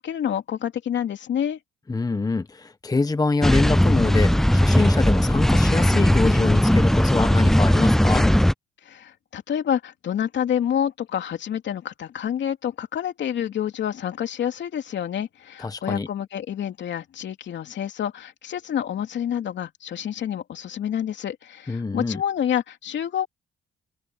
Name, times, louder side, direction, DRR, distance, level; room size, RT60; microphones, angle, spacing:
voice 1, 0.0-1.6 8.8-23.3, left 9 dB, 65° left, 2.9 m, -28 dB
voice 2, 1.9-8.3 15.6-16.1 21.7-22.2, left 3 dB, 20° left, 1.0 m, -25 dB
sound 1, 3.4-8.5, equal, ahead, 0.4 m, -18 dB
open air
cardioid pair, 90°, 20 cm